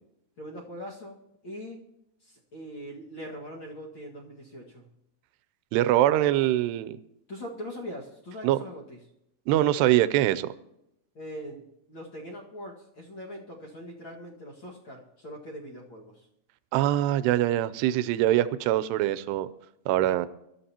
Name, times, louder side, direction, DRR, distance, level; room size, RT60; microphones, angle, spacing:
voice 1, 0.4-1.2 1.4-1.8 2.2-4.9 7.3-9.0 11.1-11.6 11.9-16.3, equal, 45° left, -2 dB, 1.7 m, -41 dB
voice 2, 5.7-7.0 8.4-8.6 9.5-10.5 16.7-19.5 19.9-20.3, right 13 dB, 85° right, 13 dB, 2.7 m, -23 dB
23.5 x 13.0 x 2.9 m, 0.82 s
omnidirectional pair, 4.7 m